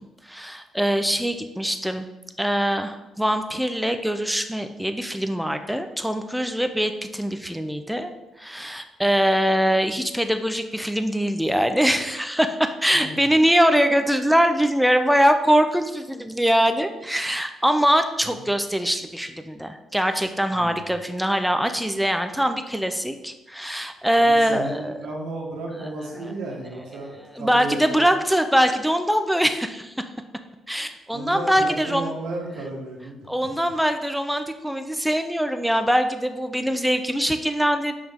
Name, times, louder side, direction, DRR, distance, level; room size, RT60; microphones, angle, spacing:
voice 1, 0.2-2.1 2.4-8.1 8.4-24.9 27.4-30.1 30.7-32.1 33.3-38.0, equal, ahead, 8 dB, 0.5 m, -22 dB
voice 2, 12.9-13.3 18.2-18.4 20.5-20.8 24.2-28.2 31.1-33.5, right 2 dB, 85° right, -2 dB, 1.4 m, -34 dB
5.3 x 4.9 x 3.7 m, 1.0 s
cardioid pair, 90°, 0 cm